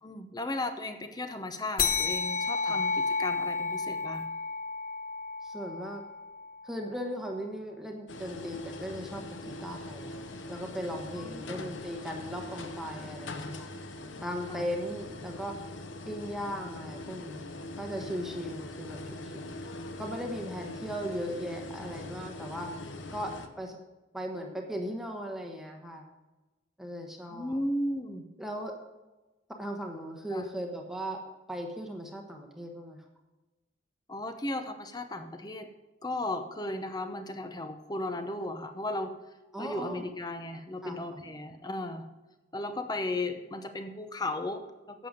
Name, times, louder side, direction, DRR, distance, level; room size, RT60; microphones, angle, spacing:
voice 1, 0.0-4.3 11.2-11.6 14.5-14.7 27.3-28.3 30.3-30.5 34.1-35.7 36.0-39.2 39.6-42.1 42.5-45.1, left 2 dB, 20° left, 8 dB, 0.8 m, -35 dB
sound 1, 1.8-6.7, left 4 dB, 45° left, 0.9 m, -31 dB
voice 2, 5.4-6.0 6.6-13.7 14.2-15.5 16.1-19.5 20.0-22.7 23.1-23.3 23.6-23.8 24.1-26.1 26.8-27.6 28.4-28.7 29.6-31.2 31.5-33.0 39.5-40.0 40.8-41.2, equal, ahead, 2 dB, 1.1 m, -38 dB
sound 2, 8.1-23.5, left 2 dB, 70° left, 0.9 m, -42 dB
11.0 x 7.8 x 5.1 m, 1.1 s
head